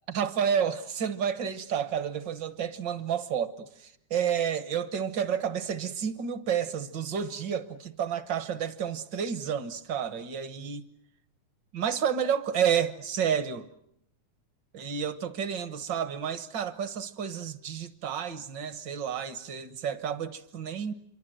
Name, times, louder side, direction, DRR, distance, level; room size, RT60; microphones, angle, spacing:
voice 1, 0.1-10.8 11.7-13.7 14.7-20.9, right 8 dB, 55° right, 1.3 m, -30 dB
27.0 x 24.5 x 7.8 m
omnidirectional pair, 3.5 m